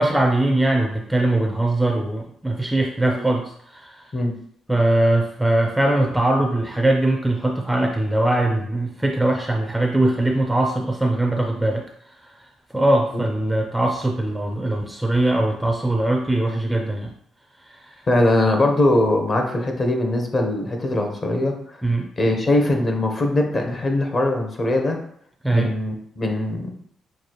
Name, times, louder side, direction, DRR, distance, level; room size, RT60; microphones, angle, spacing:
voice 1, 0.0-4.0 4.7-11.8 12.7-17.1 17.7-18.0 21.8-22.1 25.4-25.7, right 1 dB, 5° right, 3 dB, 0.4 m, -21 dB
voice 2, 18.1-21.8 22.2-25.0 25.5-26.7, left 1 dB, 35° left, 3 dB, 0.9 m, -21 dB
6.2 x 2.3 x 3.0 m, 0.65 s
cardioid pair, 90°, 0 cm